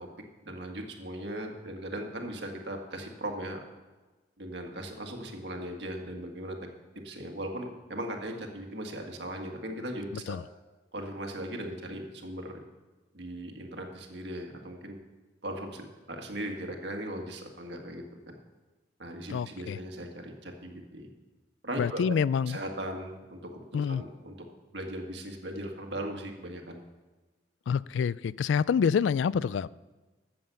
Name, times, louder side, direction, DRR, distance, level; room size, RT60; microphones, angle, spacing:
voice 1, 0.4-3.6 4.4-6.6 7.0-10.4 10.9-12.5 13.1-15.0 15.4-18.3 19.0-21.1 21.6-22.1 22.5-23.6 23.9-24.4 24.7-26.8, right 1 dB, 65° right, 3 dB, 1.8 m, -38 dB
voice 2, 19.3-19.8 21.8-22.6 23.7-24.0 27.7-29.7, left 6 dB, 80° left, 20 dB, 0.3 m, -27 dB
13.0 x 7.8 x 6.9 m, 1.2 s
head